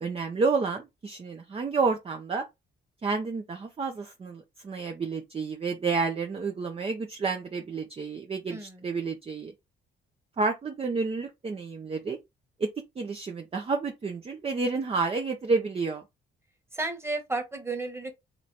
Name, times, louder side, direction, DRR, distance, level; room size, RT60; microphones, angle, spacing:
voice 1, 0.0-2.4 3.0-9.5 10.4-12.2 12.6-12.7 13.0-16.0, right 4 dB, 30° right, 0.7 m, -30 dB
voice 2, 8.5-8.8 16.7-18.1, right 3 dB, 10° right, 1.3 m, -33 dB
3.1 x 3.1 x 3.9 m
cardioid pair, 90°, 20 cm